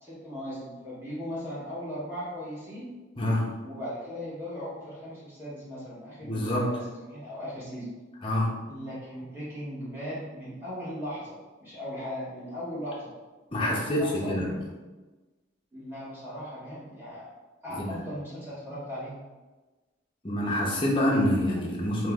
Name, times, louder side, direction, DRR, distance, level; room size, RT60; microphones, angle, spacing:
voice 1, 0.0-2.9 3.6-7.9 8.7-13.1 13.6-14.6 15.7-17.3 17.6-19.2, equal, 10° right, -10 dB, 1.4 m, -38 dB
voice 2, 6.2-6.7 8.2-8.5 13.5-14.5 17.7-18.0 20.2-22.1, left 1 dB, 25° left, -4 dB, 0.8 m, -26 dB
3.1 x 3.0 x 3.6 m, 1.2 s
head